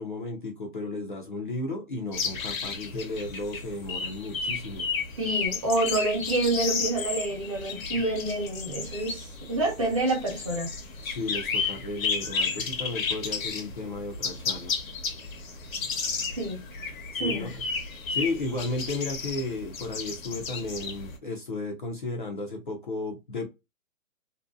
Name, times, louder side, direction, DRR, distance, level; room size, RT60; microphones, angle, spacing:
voice 1, 0.0-4.9 11.0-14.7 17.1-17.6 18.1-23.5, left 2 dB, 40° left, 0.4 m, -34 dB
sound 1, 2.1-21.2, left 5 dB, 70° left, 0.8 m, -33 dB
voice 2, 5.2-10.7 16.4-16.6 17.2-17.5, right 2 dB, 25° right, 0.6 m, -28 dB
2.6 x 2.1 x 2.3 m
hypercardioid pair, 160°, 41 cm